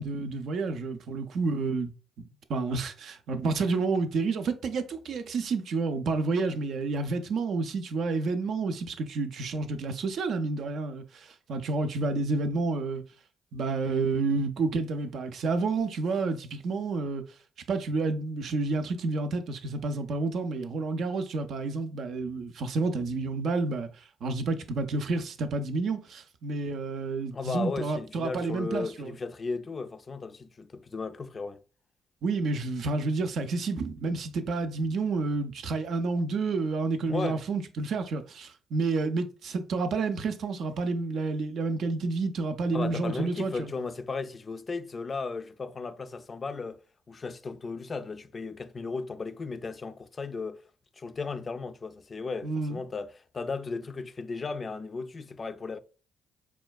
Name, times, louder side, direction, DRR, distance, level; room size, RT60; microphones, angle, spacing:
voice 1, 0.0-1.9 2.2-13.0 13.5-17.2 17.7-23.9 24.2-29.1 32.2-43.7 52.4-52.8, right 3 dB, 65° right, 0.4 m, -30 dB
voice 2, 27.3-31.6 37.1-37.4 42.7-46.8 47.1-50.6 51.0-55.8, left 4 dB, 40° left, 0.3 m, -35 dB
4.3 x 2.2 x 2.2 m
supercardioid pair, 65°, 0 cm